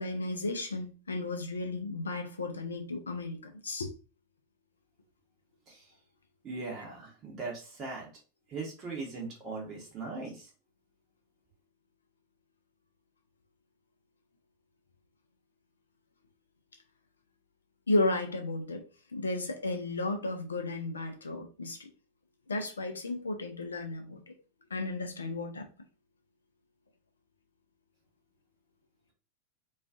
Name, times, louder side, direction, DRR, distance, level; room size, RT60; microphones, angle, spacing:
voice 1, 0.0-3.4 3.6-3.9 17.9-18.8 19.1-21.9 22.5-24.2 24.7-25.7, left 2 dB, 75° left, 5 dB, 0.4 m, -33 dB
voice 2, 6.4-8.1 8.5-10.5, right 3 dB, 30° right, -2 dB, 0.8 m, -39 dB
2.4 x 2.3 x 2.4 m, 0.35 s
figure-of-eight pair, 90°, 0 cm